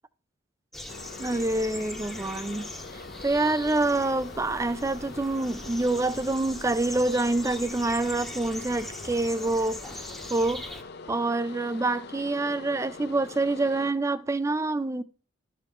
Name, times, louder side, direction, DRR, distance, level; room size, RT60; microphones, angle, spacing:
sound 1, 0.7-10.8, left 1 dB, ahead, 0.8 m, -41 dB
sound 2, 0.9-13.9, left 4 dB, 55° left, 0.5 m, -44 dB
voice 1, 1.2-2.6 2.9-10.6 11.1-15.0, right 2 dB, 15° right, 0.3 m, -27 dB
12.0 x 6.5 x 3.7 m
head